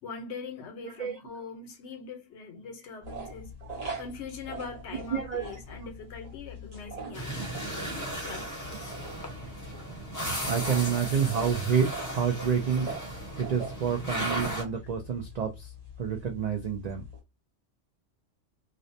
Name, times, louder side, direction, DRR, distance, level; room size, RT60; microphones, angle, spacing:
voice 1, 0.0-3.5 4.0-7.6 8.2-8.9 10.9-11.3, left 4 dB, 70° left, 0.9 m, -42 dB
sound 1, 3.0-17.2, right 1 dB, 35° right, 0.8 m, -43 dB
voice 2, 5.1-5.4 7.1-7.2 10.5-12.9 13.4-15.7 16.0-17.0, right 7 dB, 80° right, 0.3 m, -28 dB
sound 2, 7.1-14.6, right 1 dB, 20° left, 0.7 m, -36 dB
2.4 x 2.1 x 2.6 m
omnidirectional pair, 1.2 m